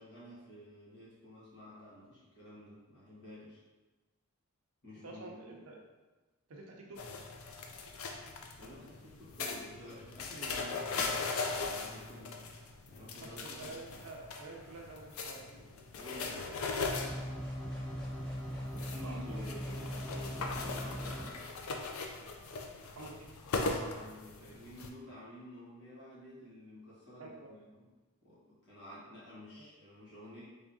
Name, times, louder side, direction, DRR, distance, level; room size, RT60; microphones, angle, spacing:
voice 1, 0.0-3.6 4.8-5.7 8.4-12.4 12.9-13.8 16.0-16.5 18.7-21.5 23.7-27.9 28.2-30.4, left 1 dB, 50° left, -8 dB, 1.5 m, -51 dB
voice 2, 5.0-5.8 6.5-7.0 13.2-16.6 18.8-19.4 22.9-23.3 27.2-27.5 29.6-29.7, right 2 dB, 70° right, 0 dB, 0.6 m, -49 dB
sound 1, 7.0-24.9, left 4 dB, 65° left, 0.4 m, -40 dB
sound 2, 16.9-21.3, equal, 5° left, 0.5 m, -40 dB
3.5 x 3.5 x 2.7 m, 1.2 s
head